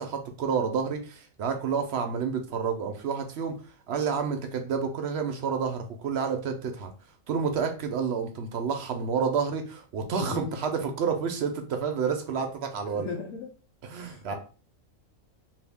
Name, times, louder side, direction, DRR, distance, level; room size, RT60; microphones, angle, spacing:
voice 1, 0.0-3.6 3.9-6.9 7.3-13.1 13.8-14.3, right 6 dB, 65° right, 5 dB, 0.7 m, -29 dB
voice 2, 10.2-10.6 12.8-13.5 14.0-14.4, left 5 dB, 90° left, -2 dB, 1.1 m, -37 dB
2.7 x 2.6 x 3.4 m, 0.36 s
omnidirectional pair, 1.4 m